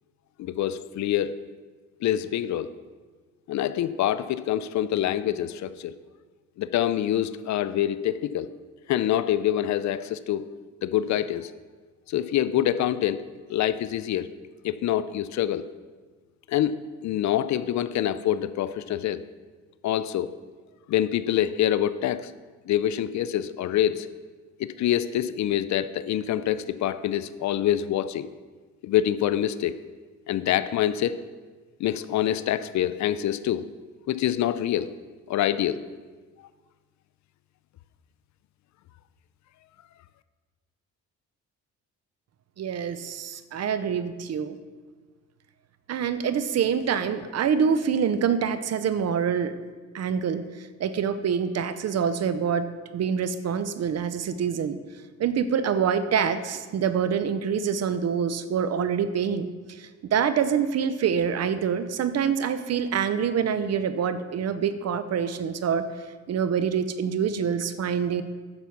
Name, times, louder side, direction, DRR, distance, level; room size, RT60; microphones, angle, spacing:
voice 1, 0.4-1.4 2.0-2.7 3.5-5.9 6.6-8.5 8.9-10.4 10.8-11.5 12.1-13.2 13.5-14.3 14.6-15.6 16.5-16.8 17.0-19.2 19.8-20.3 20.9-22.3 22.7-24.1 24.6-28.3 28.8-29.8 30.3-31.2 31.8-33.6 34.1-34.9 35.3-35.8, left 11 dB, 70° left, 15 dB, 0.6 m, -25 dB
voice 2, 42.6-44.6 45.9-49.6 49.9-52.7 52.9-54.8 55.2-65.9 66.3-68.2, right 7 dB, 55° right, 12 dB, 0.8 m, -26 dB
9.6 x 6.9 x 6.0 m, 1.4 s
cardioid pair, 90°, 30 cm